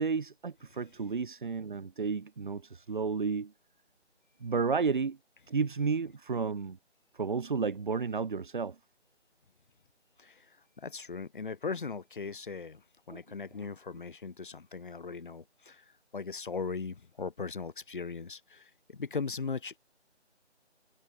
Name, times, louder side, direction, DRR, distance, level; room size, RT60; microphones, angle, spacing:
voice 1, 0.0-3.5 4.4-5.2 5.5-6.8 7.1-8.8 13.1-13.2 13.6-13.7, right 5 dB, 45° right, 4.9 m, -32 dB
voice 2, 10.8-15.8 16.1-19.8, left 4 dB, 45° left, 2.8 m, -39 dB
figure-of-eight pair, 160°, 35 cm